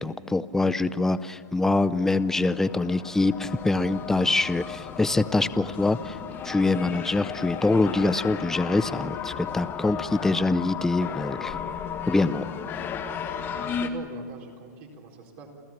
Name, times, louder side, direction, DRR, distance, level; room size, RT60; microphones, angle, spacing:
voice 1, 0.0-6.2 6.4-11.5 12.1-12.4, left 2 dB, 5° left, 15 dB, 0.5 m, -24 dB
sound 1, 1.1-1.2 1.8-13.9, left 7 dB, 20° left, 1.3 m, -35 dB
voice 2, 13.6-15.5, right 5 dB, 40° right, 0 dB, 4.3 m, -43 dB
28.0 x 15.5 x 7.3 m, 2.1 s
hypercardioid pair, 150°, 10 cm